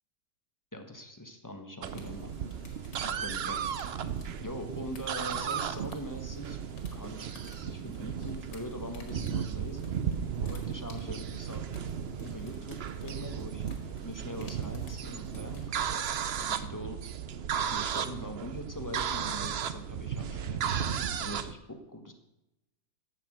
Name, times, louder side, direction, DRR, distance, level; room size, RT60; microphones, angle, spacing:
voice 1, 0.7-2.3 3.0-3.6 4.0-4.1 4.4-6.6 6.9-9.9 10.4-11.6 12.1-13.7 14.0-17.0 17.3-22.1, equal, 15° left, 4 dB, 1.0 m, -43 dB
sound 1, 1.8-21.5, right 8 dB, 90° right, 0.5 m, -35 dB
sound 2, 1.9-16.6, left 3 dB, 70° left, 2.5 m, -56 dB
11.5 x 6.8 x 7.8 m, 0.92 s
omnidirectional pair, 1.9 m